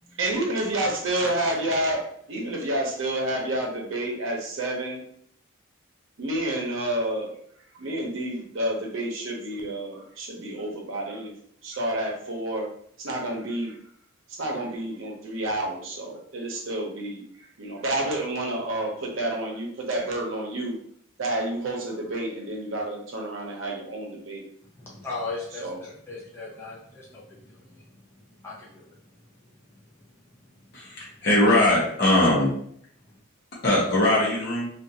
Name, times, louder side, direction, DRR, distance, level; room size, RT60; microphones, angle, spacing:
voice 1, 0.2-5.0 6.2-7.4 7.7-11.3 11.6-12.7 13.0-13.8 14.3-17.2 17.6-20.8 21.2-24.4 25.6-25.8, right 1 dB, 75° right, 0 dB, 0.7 m, -29 dB
voice 2, 24.8-29.0 29.9-30.1 30.5-31.3 33.0-33.2, left 3 dB, 10° left, -7 dB, 0.5 m, -39 dB
voice 3, 30.7-32.5 33.6-34.7, left 1 dB, 50° left, -6 dB, 0.8 m, -21 dB
2.4 x 2.4 x 2.7 m, 0.65 s
head